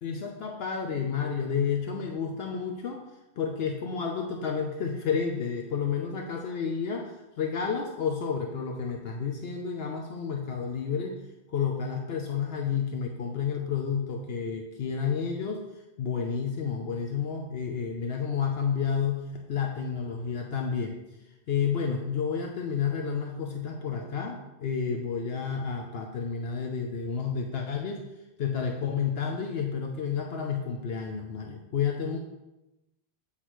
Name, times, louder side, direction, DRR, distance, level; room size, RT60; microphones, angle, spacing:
voice 1, 0.0-3.0 3.4-11.2 11.5-15.6 16.0-19.2 19.5-21.0 21.5-28.0 28.4-32.2, left 6 dB, 70° left, 2 dB, 0.9 m, -30 dB
8.1 x 5.7 x 3.0 m, 1.0 s
omnidirectional pair, 1.1 m